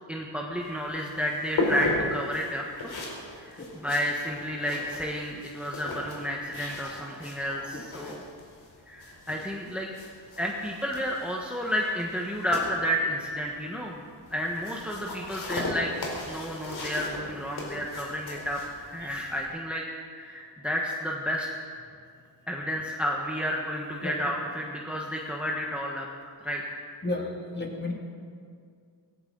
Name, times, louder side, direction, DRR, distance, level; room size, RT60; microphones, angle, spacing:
voice 1, 0.1-2.9 3.4-8.2 8.9-9.9 10.4-14.0 14.3-19.8 20.2-21.5 22.5-26.6, equal, 5° right, -2 dB, 1.3 m, -31 dB
sound 1, 0.6-19.4, left 2 dB, 65° left, 4.1 m, -37 dB
voice 2, 27.0-27.9, left 2 dB, 25° left, 0 dB, 2.4 m, -32 dB
18.0 x 17.0 x 4.0 m, 2.2 s
cardioid pair, 110°, 41 cm